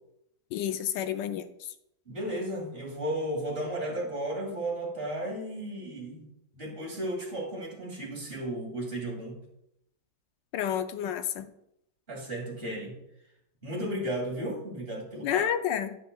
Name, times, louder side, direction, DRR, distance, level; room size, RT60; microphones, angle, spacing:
voice 1, 0.5-1.5 10.5-11.5 15.2-16.0, left 9 dB, 85° left, 10 dB, 1.3 m, -30 dB
voice 2, 2.1-6.3 6.5-9.4 12.1-13.0 13.6-15.5, right 1 dB, 30° right, -3 dB, 2.7 m, -34 dB
9.5 x 9.0 x 2.3 m, 0.80 s
omnidirectional pair, 1.9 m